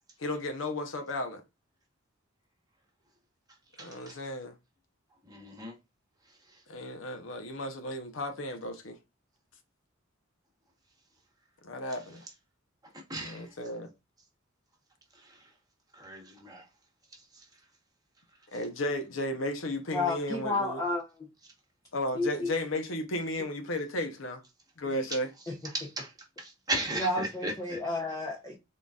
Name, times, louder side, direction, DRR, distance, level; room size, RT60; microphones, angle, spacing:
voice 1, 0.2-1.4 3.8-4.6 6.7-9.0 11.6-12.2 13.2-13.9 18.5-20.8 21.9-24.4 24.8-25.3, left 1 dB, 70° left, 0.8 m, -34 dB
voice 2, 3.8-4.2 5.3-5.7 13.1-13.5 15.9-16.6 25.7-26.1 26.4-27.8, right 2 dB, 20° right, 1.1 m, -36 dB
voice 3, 19.9-21.0 22.1-22.5 25.5-25.6 26.9-28.6, left 2 dB, 15° left, 0.6 m, -31 dB
3.8 x 3.8 x 2.3 m
head